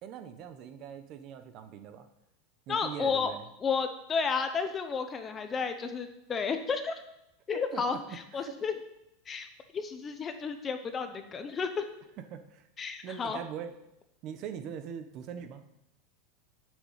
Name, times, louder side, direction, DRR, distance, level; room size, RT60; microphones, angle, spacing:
voice 1, 0.0-2.1 2.7-3.5 7.5-8.6 12.2-12.7 13.0-13.8 14.2-15.6, right 8 dB, 35° right, 9 dB, 0.9 m, -42 dB
voice 2, 2.7-3.3 3.6-7.0 7.5-8.0 8.3-8.7 9.3-9.5 9.7-11.9 12.8-13.4, left 5 dB, 15° left, 8 dB, 0.7 m, -32 dB
8.6 x 6.4 x 8.2 m, 0.85 s
supercardioid pair, 170°, 0 cm